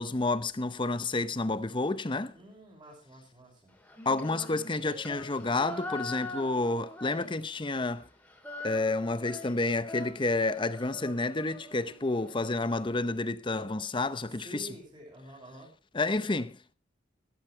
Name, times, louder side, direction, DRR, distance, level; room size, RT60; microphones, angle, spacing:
voice 1, 0.0-2.4 4.1-8.1 8.6-14.7 15.9-16.7, left 2 dB, 25° left, 0.8 m, -30 dB
voice 2, 2.3-3.7 14.4-15.7, right 1 dB, 25° right, 6.0 m, -48 dB
Female singing, 3.8-7.8 8.0-12.3, left 2 dB, 10° left, 3.3 m, -43 dB
15.5 x 13.5 x 3.3 m
head